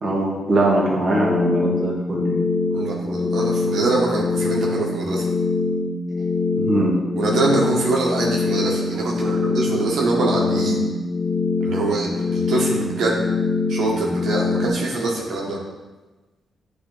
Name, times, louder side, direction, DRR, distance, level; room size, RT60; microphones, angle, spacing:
voice 1, 0.0-2.4 6.5-7.0, right 1 dB, 35° right, -4 dB, 1.4 m, -21 dB
sound 1, 1.0-14.7, left 3 dB, 40° left, 0.3 m, -23 dB
voice 2, 2.7-5.3 7.2-10.8 11.6-13.2 13.7-15.6, right 2 dB, 70° right, -2 dB, 1.3 m, -24 dB
9.4 x 3.5 x 4.0 m, 1.2 s
wide cardioid pair, 150°, 0 cm